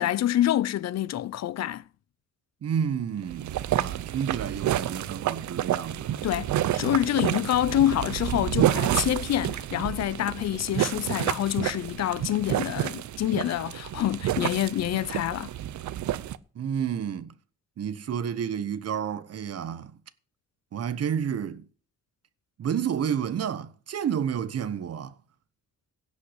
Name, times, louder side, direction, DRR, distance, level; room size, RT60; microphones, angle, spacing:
voice 1, 0.0-1.8 6.2-15.5, left 12 dB, 60° left, 0.5 m, -27 dB
voice 2, 2.6-6.1 6.8-6.9 16.5-17.3 17.8-19.9 20.7-21.7 22.6-25.1, right 8 dB, 55° right, 1.1 m, -30 dB
sound 1, 3.2-16.4, right 12 dB, 70° right, 0.7 m, -29 dB
16.5 x 5.6 x 8.0 m
cardioid pair, 135°, 30 cm